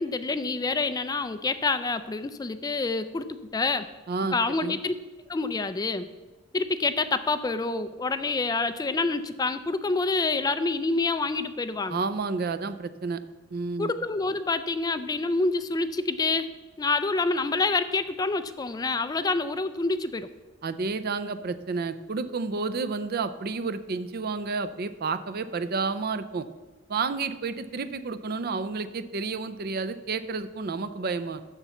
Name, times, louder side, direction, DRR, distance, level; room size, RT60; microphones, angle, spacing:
voice 1, 0.0-3.9 4.3-4.9 5.3-6.1 6.5-12.0 13.8-16.5 16.8-20.3, left 3 dB, 20° left, 11 dB, 0.4 m, -27 dB
voice 2, 4.1-4.8 11.9-13.2 13.5-13.9 20.6-26.5 26.9-31.4, right 4 dB, 50° right, 13 dB, 0.5 m, -30 dB
7.2 x 6.7 x 7.0 m, 1.2 s
head